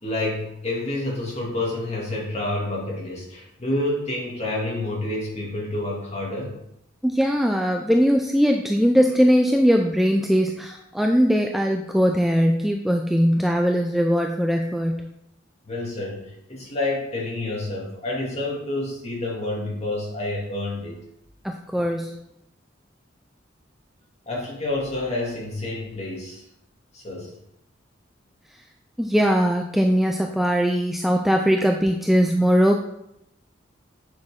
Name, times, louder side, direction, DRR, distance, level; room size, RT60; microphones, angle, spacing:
voice 1, 0.0-6.6 15.7-21.0 24.3-26.4 26.9-27.3, left 2 dB, 35° left, -4 dB, 2.6 m, -28 dB
voice 2, 7.0-15.1 21.4-22.1 29.0-32.8, equal, ahead, 2 dB, 0.4 m, -20 dB
8.9 x 6.1 x 3.7 m, 0.81 s
head